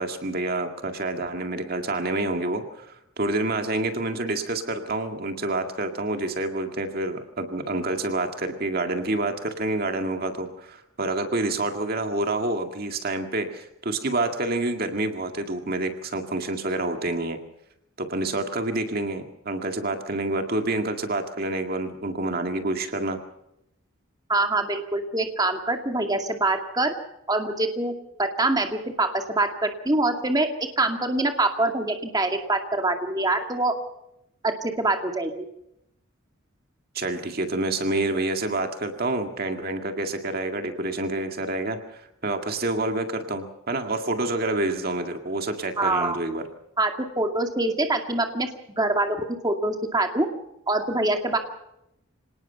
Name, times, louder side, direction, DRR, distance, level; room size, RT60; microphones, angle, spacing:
voice 1, 0.0-17.4 18.0-23.2 36.9-46.4, right 2 dB, 50° right, 5 dB, 2.1 m, -28 dB
voice 2, 24.3-26.9 27.3-27.9 28.2-30.5 30.8-33.7 34.4-35.4 45.8-46.2 46.8-48.5 48.8-50.3 50.7-51.4, right 2 dB, 20° right, 4 dB, 2.2 m, -24 dB
26.0 x 19.0 x 5.7 m, 0.81 s
head